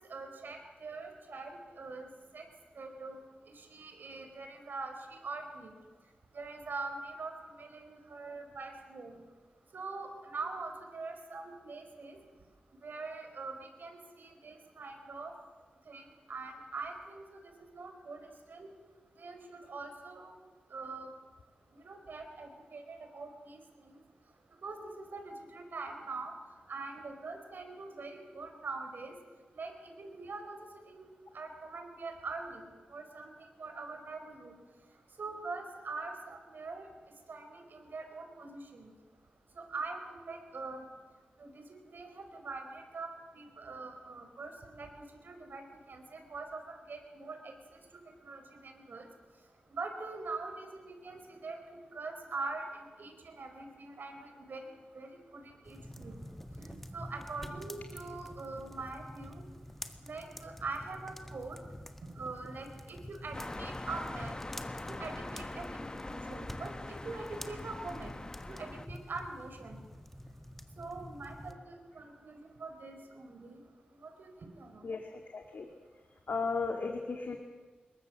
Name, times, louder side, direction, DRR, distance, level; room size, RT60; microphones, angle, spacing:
voice 1, 0.1-2.1 2.3-2.4 2.8-3.2 3.5-5.7 6.3-9.2 9.7-12.2 12.8-15.3 15.9-18.7 19.2-20.3 20.7-21.1 21.8-23.6 23.9-24.0 24.6-26.3 26.7-29.1 29.5-30.6 30.9-31.1 31.3-33.3 33.6-34.5 35.2-36.9 37.3-38.9 39.5-40.9 41.4-43.1 43.3-44.9 45.2-46.6 46.9-47.8 48.2-49.1 49.7-54.7 54.9-56.2 56.6-59.4 60.0-61.6 62.1-64.4 64.9-66.7 67.0-68.1 68.5-69.8 70.8-73.6 74.0-74.8, right 3 dB, 85° right, 5 dB, 4.7 m, -43 dB
sound 1, 55.6-71.5, left 1 dB, 5° left, 1.7 m, -48 dB
sound 2, 63.3-68.9, left 2 dB, 25° left, 0.8 m, -42 dB
voice 2, 74.8-75.7 76.3-77.4, left 4 dB, 75° left, 3 dB, 2.2 m, -35 dB
26.0 x 22.0 x 7.5 m, 1.3 s
wide cardioid pair, 85°, 3 cm